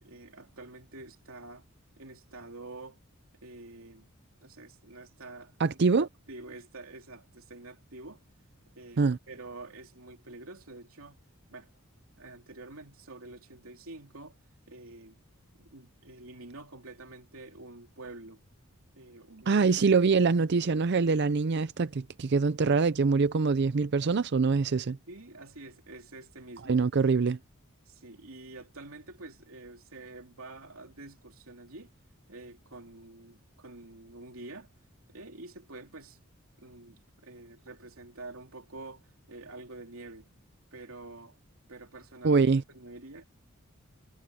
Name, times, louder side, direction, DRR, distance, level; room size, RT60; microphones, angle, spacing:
voice 1, 0.0-1.7 1.9-3.0 3.4-4.1 4.4-8.2 8.7-11.2 11.5-11.7 12.2-14.4 14.7-15.2 15.6-18.4 19.0-19.7 25.1-26.8 27.9-31.9 32.3-34.7 35.1-36.2 36.6-40.3 40.7-41.4 41.7-43.2, right 2 dB, 75° right, 2.9 m, -47 dB
voice 2, 5.6-6.1 9.0-9.2 19.5-25.0 26.7-27.4 42.2-42.6, right 4 dB, 50° right, 0.5 m, -24 dB
head